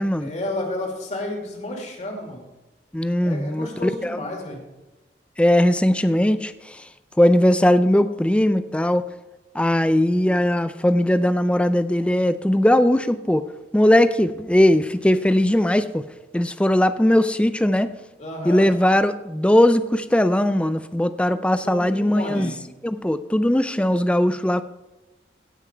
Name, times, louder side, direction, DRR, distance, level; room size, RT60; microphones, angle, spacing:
voice 1, 0.2-2.4 3.2-4.6 18.2-18.7 21.6-22.7, left 1 dB, 40° left, 1 dB, 2.5 m, -31 dB
voice 2, 2.9-4.2 5.4-6.5 7.2-9.0 9.5-13.5 13.7-16.0 16.3-17.9 18.4-22.5 22.8-24.6, left 1 dB, 5° left, 12 dB, 0.4 m, -19 dB
16.5 x 6.1 x 4.4 m, 1.1 s
head